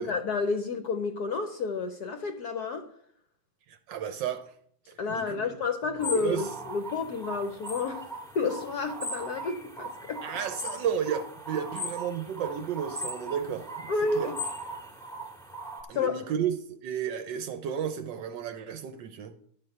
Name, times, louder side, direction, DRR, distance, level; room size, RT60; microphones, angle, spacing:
voice 1, 0.0-2.9 5.0-8.1 8.3-10.2 13.9-14.4 15.9-16.2, left 4 dB, 65° left, 1.0 m, -30 dB
voice 2, 3.7-4.5 4.9-5.6 5.9-6.4 10.2-14.3 15.9-19.3, right 8 dB, 70° right, 1.2 m, -33 dB
sound 1, 6.0-15.8, equal, ahead, 1.5 m, -39 dB
10.5 x 4.3 x 7.8 m
omnidirectional pair, 2.3 m